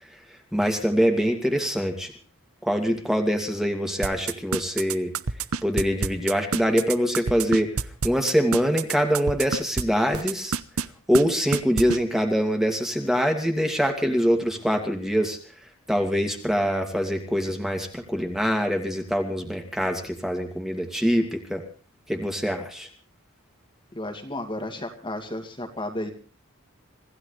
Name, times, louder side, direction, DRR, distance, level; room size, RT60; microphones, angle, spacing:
voice 1, 0.5-2.1 2.6-5.1 5.6-7.7 8.0-10.6 11.1-15.4 15.9-21.6 22.1-22.9, equal, ahead, 4 dB, 2.4 m, -24 dB
sound 1, 4.0-9.8 10.1-10.9 11.1-11.2 11.5-12.0, right 5 dB, 90° right, 0.9 m, -26 dB
voice 2, 23.9-26.1, left 1 dB, 25° left, 4 dB, 2.3 m, -33 dB
26.0 x 16.0 x 3.3 m, 0.41 s
head